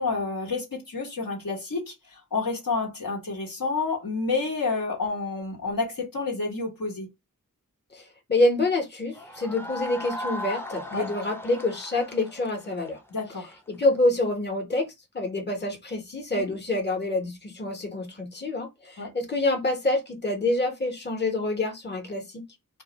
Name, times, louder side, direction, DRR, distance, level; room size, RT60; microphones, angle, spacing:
voice 1, 0.0-7.1 10.9-11.1 13.1-13.5 16.3-16.4 19.0-19.1, left 3 dB, 70° left, 1.0 m, -29 dB
voice 2, 7.9-13.0 13.7-22.4, left 2 dB, 30° left, 0.9 m, -27 dB
sound 1, 9.1-13.9, left 1 dB, 5° left, 0.5 m, -37 dB
2.2 x 2.1 x 2.8 m
wide cardioid pair, 50°, 35 cm